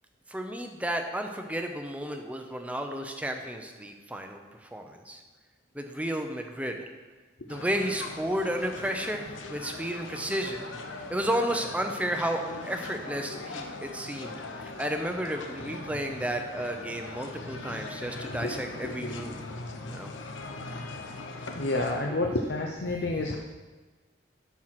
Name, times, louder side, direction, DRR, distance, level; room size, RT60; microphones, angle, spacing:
voice 1, 0.3-5.2 5.7-6.8 7.4-10.7 11.1-19.4 19.9-20.1, right 1 dB, 5° right, 4 dB, 0.7 m, -32 dB
sound 1, 7.5-22.0, left 3 dB, 90° left, 0.9 m, -40 dB
voice 2, 18.2-19.4 21.5-23.4, left 2 dB, 60° left, 1 dB, 0.7 m, -30 dB
12.0 x 4.7 x 5.9 m, 1.3 s
head